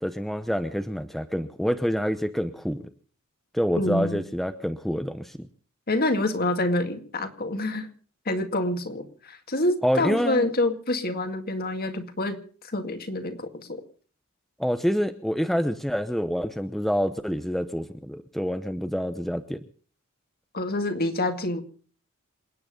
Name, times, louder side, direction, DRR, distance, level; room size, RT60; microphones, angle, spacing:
voice 1, 0.0-2.9 3.5-5.4 9.8-10.5 14.6-19.6, equal, ahead, 8 dB, 0.8 m, -27 dB
voice 2, 3.8-4.2 5.9-7.9 8.3-13.8 20.5-21.6, left 2 dB, 45° left, 7 dB, 2.1 m, -27 dB
28.0 x 9.7 x 5.2 m, 0.43 s
head